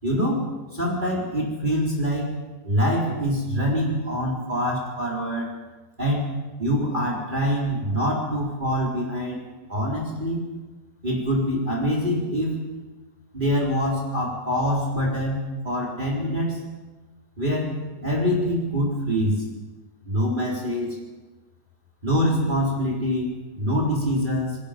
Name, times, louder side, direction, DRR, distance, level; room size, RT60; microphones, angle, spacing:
voice 1, 0.0-0.4 0.7-2.4 2.6-5.5 6.0-6.3 6.6-9.4 9.7-10.5 11.0-12.6 13.3-16.6 17.4-19.4 20.0-21.0 22.0-24.6, equal, 25° right, -4 dB, 4.4 m, -25 dB
28.5 x 21.5 x 5.2 m, 1.2 s
omnidirectional pair, 1.9 m